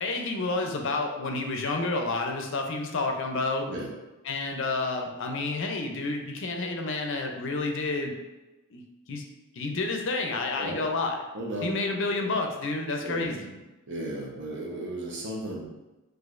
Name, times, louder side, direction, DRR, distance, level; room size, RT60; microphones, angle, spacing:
voice 1, 0.0-3.7 4.2-8.1 8.7-8.8 9.1-9.2 9.6-11.2 11.6-13.6, left 3 dB, 60° left, 3 dB, 0.5 m, -29 dB
voice 2, 11.3-11.7 12.2-12.3 13.0-13.3 13.8-15.6, right 1 dB, 55° right, -2 dB, 0.9 m, -35 dB
6.2 x 2.5 x 2.5 m, 1.1 s
head